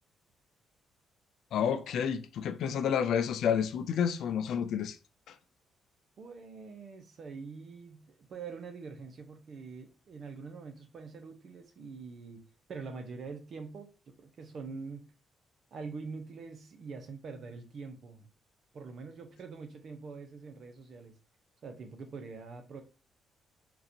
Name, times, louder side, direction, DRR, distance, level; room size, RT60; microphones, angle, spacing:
voice 1, 1.5-5.0 5.3-5.4, left 8 dB, 75° left, 0.4 m, -30 dB
voice 2, 6.2-12.4 12.7-15.1 15.7-18.3 18.7-21.1 21.6-22.8, right 4 dB, 55° right, 0.8 m, -44 dB
3.8 x 2.5 x 2.8 m
cardioid pair, 90°, 0 cm